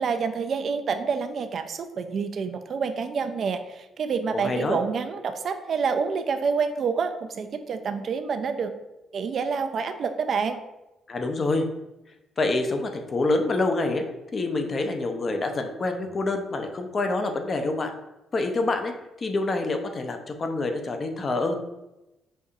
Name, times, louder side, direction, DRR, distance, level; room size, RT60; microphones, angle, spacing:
voice 1, 0.0-8.7 9.1-10.6, right 5 dB, 55° right, 8 dB, 0.4 m, -28 dB
voice 2, 4.3-4.8 11.1-11.7 12.4-14.0 14.3-17.9 18.3-18.9 19.2-21.5, left 2 dB, 40° left, 5 dB, 0.6 m, -26 dB
5.3 x 2.7 x 2.4 m, 0.96 s
cardioid pair, 90°, 0 cm